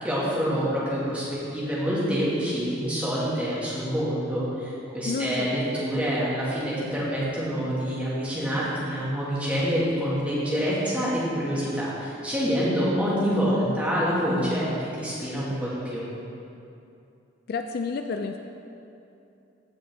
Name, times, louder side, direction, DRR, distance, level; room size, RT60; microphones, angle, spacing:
voice 1, 0.0-16.0, equal, 5° right, -9 dB, 1.9 m, -26 dB
voice 2, 5.1-5.5 5.7-5.8 17.5-18.4, left 4 dB, 50° left, 5 dB, 0.3 m, -30 dB
15.0 x 5.1 x 3.6 m, 2.7 s
head